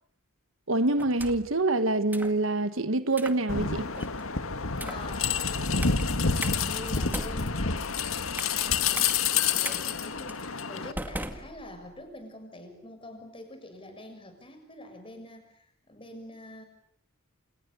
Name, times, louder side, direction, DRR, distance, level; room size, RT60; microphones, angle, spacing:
voice 1, 0.7-3.9, right 2 dB, 70° right, 1.4 m, -26 dB
sound 1, 1.0-1.6 2.1-2.4 3.1-3.4 4.0-4.3 4.7-5.1 5.8-6.0 6.4-6.6 7.0-8.6 9.0-9.1 9.6-9.8 10.3-10.4 11.0-12.0, right 1 dB, 10° right, 2.0 m, -38 dB
sound 2, 3.5-10.9, left 5 dB, 75° left, 1.9 m, -28 dB
voice 2, 4.8-6.1 6.5-7.9 8.5-16.7, left 1 dB, 25° left, 6.9 m, -46 dB
29.5 x 29.0 x 7.0 m
head